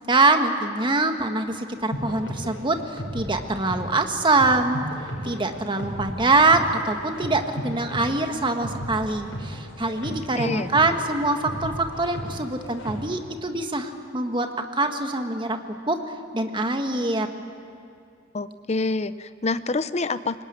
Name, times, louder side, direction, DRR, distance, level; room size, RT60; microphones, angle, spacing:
voice 1, 0.1-4.8 5.2-14.5 14.7-15.6 15.9-16.0 16.3-17.3, right 2 dB, 25° right, 6 dB, 1.6 m, -24 dB
sound 1, 1.9-13.2, equal, 70° left, 6.4 m, -35 dB
voice 2, 10.3-10.7 18.3-20.4, left 3 dB, 35° left, 13 dB, 0.7 m, -27 dB
24.5 x 20.5 x 9.8 m, 2.5 s
head